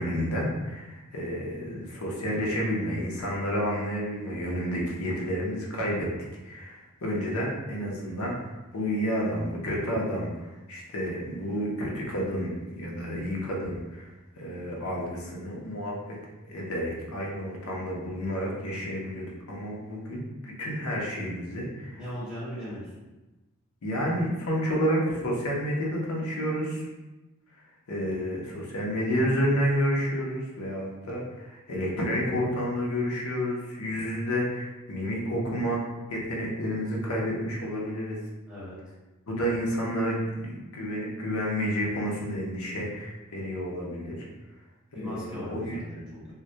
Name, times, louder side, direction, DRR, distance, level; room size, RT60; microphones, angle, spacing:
voice 1, 0.0-6.1 6.4-8.3 8.7-14.1 14.4-16.0 16.5-22.0 23.8-26.8 27.9-35.8 36.1-38.2 39.3-44.3 45.0-45.8, equal, 70° left, -3 dB, 0.6 m, -30 dB
voice 2, 21.9-22.9 38.5-38.8 44.9-46.2, left 1 dB, 5° right, -12 dB, 1.1 m, -38 dB
2.2 x 2.1 x 2.7 m, 1.1 s
head